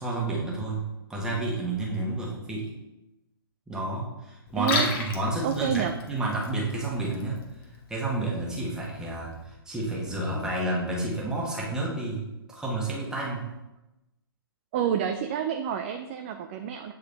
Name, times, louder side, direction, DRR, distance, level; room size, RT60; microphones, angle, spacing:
voice 1, 0.0-2.7 3.7-7.4 7.9-13.5, right 2 dB, 5° right, -4 dB, 1.4 m, -30 dB
Liquid, 4.5-9.5, left 3 dB, 35° left, 1.1 m, -36 dB
voice 2, 4.6-4.9 5.4-6.0 14.7-16.9, right 8 dB, 30° right, 6 dB, 0.3 m, -28 dB
8.1 x 3.8 x 3.4 m, 0.98 s
figure-of-eight pair, 120°, 13 cm